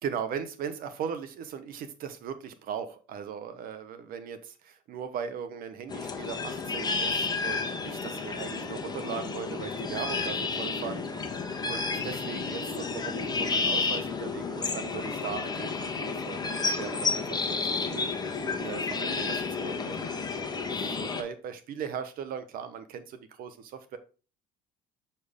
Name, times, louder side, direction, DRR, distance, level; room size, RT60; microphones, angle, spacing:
voice 1, 0.0-11.0 11.6-18.4 18.6-20.1 20.7-24.0, right 7 dB, 55° right, 10 dB, 1.1 m, -38 dB
sound 1, 5.9-21.2, left 4 dB, 25° left, 1.3 m, -31 dB
6.6 x 4.4 x 3.7 m, 0.35 s
hypercardioid pair, 70°, 17 cm